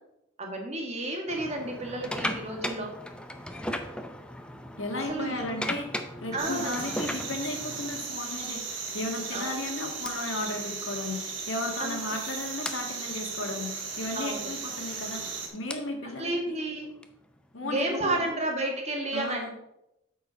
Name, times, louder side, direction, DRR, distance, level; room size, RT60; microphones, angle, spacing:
voice 1, 0.4-2.9 5.1-5.6 6.3-7.0 9.3-9.5 11.8-12.0 14.1-14.5 16.2-16.9 17.6-19.5, right 2 dB, 35° right, 1 dB, 1.7 m, -31 dB
sound 1, 1.3-8.1 8.9-9.1 10.0-10.1 11.5-11.6 11.8-12.0 12.6-12.8 14.5-17.7, left 1 dB, 5° left, 0.5 m, -37 dB
voice 2, 4.8-16.6 17.5-18.3 19.1-19.5, left 2 dB, 80° left, 3 dB, 1.8 m, -35 dB
sound 2, 6.4-15.5, right 5 dB, 75° right, 1.7 m, -36 dB
8.4 x 4.7 x 5.5 m, 0.86 s
head